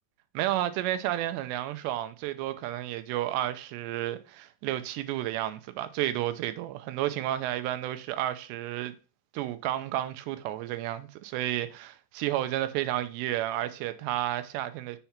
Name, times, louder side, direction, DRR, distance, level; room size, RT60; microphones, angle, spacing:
voice 1, 0.3-9.0 9.3-15.0, right 13 dB, 80° right, 2.7 m, -31 dB
7.2 x 3.4 x 5.7 m
omnidirectional pair, 5.2 m